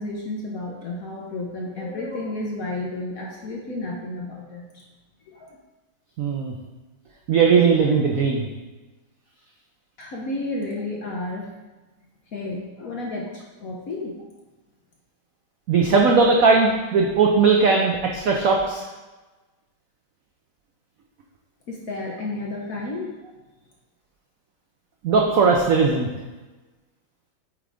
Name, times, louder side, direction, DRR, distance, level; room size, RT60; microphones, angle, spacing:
voice 1, 0.0-4.8 5.2-5.6 10.0-11.5 12.3-14.1 21.7-23.2, left 2 dB, 60° left, -1 dB, 0.9 m, -32 dB
voice 2, 6.2-6.5 7.3-8.5 15.7-18.8 25.0-26.1, right 4 dB, 90° right, 1 dB, 0.7 m, -18 dB
8.2 x 3.7 x 3.5 m, 1.2 s
omnidirectional pair, 2.2 m